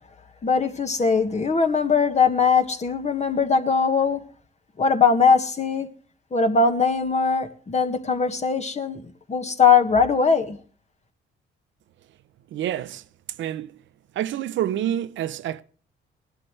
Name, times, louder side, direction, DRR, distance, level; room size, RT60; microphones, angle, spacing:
voice 1, 0.4-4.2 4.8-5.9 6.3-9.0 9.3-10.6, left 5 dB, 35° left, 1.7 m, -20 dB
voice 2, 12.5-13.0 13.4-13.7 14.1-15.6, right 11 dB, 75° right, 0.7 m, -27 dB
18.5 x 12.0 x 3.2 m
cardioid pair, 90°, 20 cm